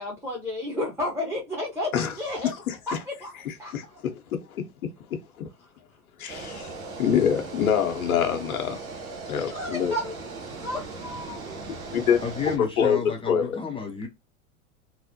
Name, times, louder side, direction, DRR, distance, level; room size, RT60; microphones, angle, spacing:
voice 1, 0.0-2.5 2.9-4.0 9.4-10.2 10.6-11.6, left 1 dB, 5° right, 0.9 m, -32 dB
voice 2, 2.7-3.0 3.7-4.2 4.5-4.6 5.4-5.5 6.2-6.7 7.0-8.8 9.3-9.9 11.9-12.2 12.8-13.0 13.3-13.6, left 8 dB, 85° left, 0.8 m, -25 dB
sound 1, 6.3-12.6, right 3 dB, 85° right, 1.2 m, -38 dB
voice 3, 12.2-14.1, left 5 dB, 15° left, 0.5 m, -31 dB
3.1 x 2.0 x 2.6 m
hypercardioid pair, 100°, 42 cm